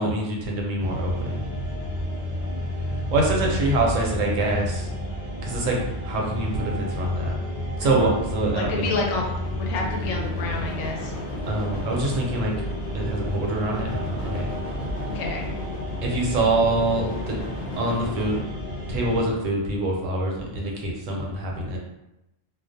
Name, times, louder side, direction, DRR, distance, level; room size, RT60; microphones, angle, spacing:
voice 1, 0.0-1.5 3.1-4.9 5.4-5.8 6.1-7.3 7.8-8.9 11.5-12.5 12.9-14.5 16.0-17.4 17.8-18.4 18.9-21.8, right 2 dB, 80° right, -1 dB, 1.0 m, -25 dB
sound 1, 0.8-19.2, left 1 dB, 40° right, 0.6 m, -31 dB
voice 2, 7.8-8.1 8.5-9.2 9.6-11.1 15.1-15.5, left 3 dB, 90° left, 0 dB, 1.0 m, -29 dB
sound 2, 9.3-18.4, left 1 dB, 45° left, 0.7 m, -38 dB
2.4 x 2.0 x 2.5 m, 0.91 s
omnidirectional pair, 1.3 m